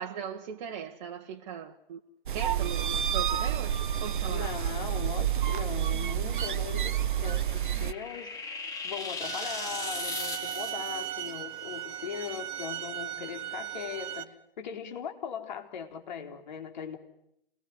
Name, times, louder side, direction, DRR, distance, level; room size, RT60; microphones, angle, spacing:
voice 1, 0.0-2.0 2.3-4.5, right 7 dB, 35° right, 1.4 m, -39 dB
sound 1, 2.3-7.9, right 10 dB, 55° right, 0.9 m, -29 dB
voice 2, 4.3-8.4 8.8-17.0, left 8 dB, 50° left, 3.7 m, -39 dB
sound 2, 6.9-11.1, left 4 dB, 10° left, 3.5 m, -38 dB
sound 3, 9.2-14.2, right 12 dB, 20° right, 1.2 m, -37 dB
27.5 x 19.5 x 9.4 m
figure-of-eight pair, 125°, 30 cm